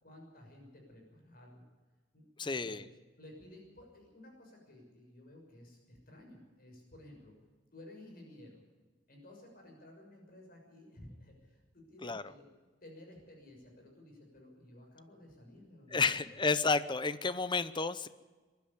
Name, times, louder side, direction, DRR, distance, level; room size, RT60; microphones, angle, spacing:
voice 1, 0.0-1.6 2.1-2.8 3.2-7.3 7.7-8.6 9.1-12.5 12.8-16.0, left 1 dB, 50° left, 1 dB, 6.4 m, -55 dB
voice 2, 2.4-2.8 12.0-12.2 15.9-18.1, left 4 dB, 25° left, 14 dB, 0.7 m, -31 dB
22.5 x 12.0 x 9.8 m, 1.3 s
head